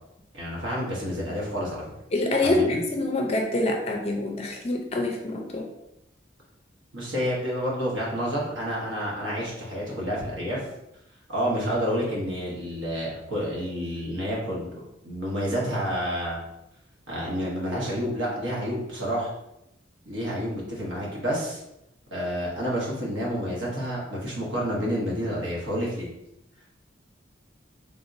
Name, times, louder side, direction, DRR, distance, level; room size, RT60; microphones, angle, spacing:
voice 1, 0.3-1.8 2.4-2.8 6.9-10.6 11.3-14.7 15.0-16.4 17.1-19.3 20.1-21.6 22.1-26.1, equal, 75° right, -4 dB, 1.1 m, -29 dB
voice 2, 2.1-5.7, left 2 dB, 30° left, 2 dB, 0.4 m, -26 dB
3.4 x 2.8 x 2.5 m, 0.85 s
head